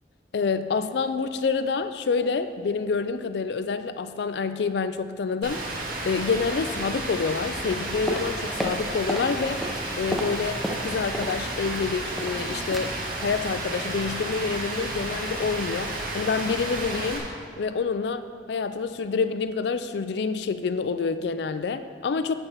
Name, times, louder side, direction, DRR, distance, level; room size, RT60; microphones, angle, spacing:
voice 1, 0.3-5.6 6.0-9.6 10.0-17.3 17.6-22.4, left 5 dB, 65° left, 11 dB, 0.4 m, -27 dB
Rain, 5.4-17.2, right 1 dB, 50° right, 1.8 m, -32 dB
sound 1, 8.1-9.3 9.6-11.4 11.6-12.4 12.7-12.9 13.2-13.4 13.7-14.0 14.3-14.4, equal, ahead, 0.6 m, -32 dB
6.9 x 6.8 x 7.2 m, 2.1 s
head